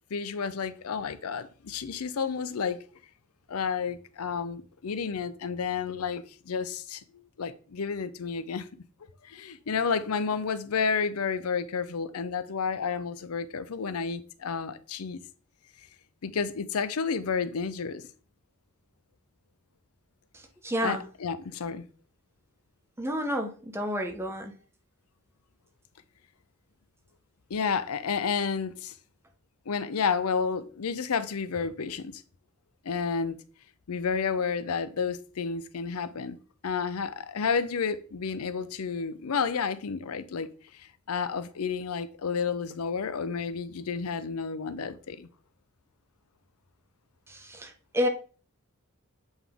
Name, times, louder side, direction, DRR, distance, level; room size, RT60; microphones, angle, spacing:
voice 1, 0.1-2.8 3.5-8.7 9.2-15.2 16.2-18.0 20.8-21.8 27.5-28.9 29.7-32.2 32.8-33.4 33.9-36.4 36.6-40.5 40.8-45.3, left 5 dB, 85° left, 0.6 m, -31 dB
voice 2, 20.6-21.0 23.0-24.5 47.3-48.1, equal, 10° right, 0.7 m, -30 dB
7.9 x 3.7 x 3.5 m
head